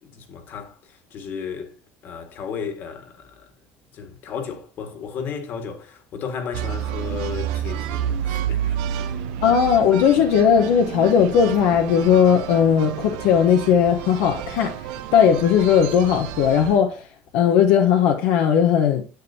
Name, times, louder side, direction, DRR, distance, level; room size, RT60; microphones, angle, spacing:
voice 1, 0.0-1.7 2.0-3.5 3.9-8.8 9.0-9.2 9.5-9.6, left 6 dB, 50° left, 1.9 m, -34 dB
sound 1, 6.5-16.8, right 10 dB, 90° right, 0.9 m, -30 dB
voice 2, 9.4-14.7 15.1-17.0 17.3-19.0, left 8 dB, 80° left, 1.1 m, -17 dB
10.5 x 7.2 x 2.8 m
cardioid pair, 135°, 4 cm